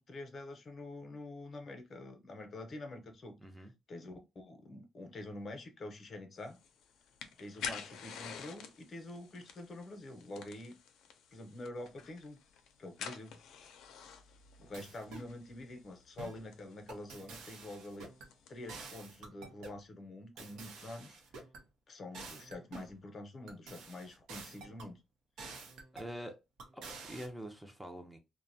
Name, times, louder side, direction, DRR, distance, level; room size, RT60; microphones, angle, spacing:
voice 1, 0.0-3.4 3.9-6.6 7.4-10.7 11.3-12.4 12.8-13.4 14.6-18.1 18.5-21.2 21.9-25.0, left 2 dB, 45° left, 0.7 m, -46 dB
voice 2, 3.4-3.7 25.9-26.4 26.7-28.2, equal, 5° right, 0.5 m, -45 dB
sound 1, 6.4-18.9, left 7 dB, 80° left, 0.5 m, -50 dB
sound 2, 14.7-15.3 16.2-16.5 16.9-18.3 18.7-19.8 20.4-21.6 22.1-23.0 23.5-24.9 25.4-26.1 26.6-27.3, right 4 dB, 90° right, 0.6 m, -49 dB
2.6 x 2.1 x 2.6 m
cardioid pair, 90°, 0 cm